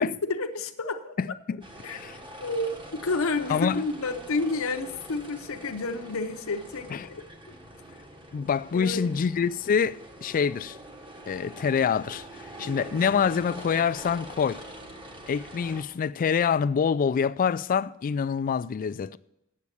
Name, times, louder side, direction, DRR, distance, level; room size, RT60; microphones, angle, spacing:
voice 1, 0.0-1.2 1.8-2.0 2.4-7.2 8.7-9.2 12.6-12.9, left 3 dB, 65° left, 0.7 m, -30 dB
voice 2, 1.2-2.2 3.5-3.8 6.9-7.1 8.3-10.8 11.3-12.2 12.6-14.6 15.3-19.2, left 6 dB, 40° left, 0.3 m, -26 dB
sound 1, 1.6-15.8, right 1 dB, 20° right, 1.2 m, -44 dB
8.5 x 7.4 x 8.3 m
head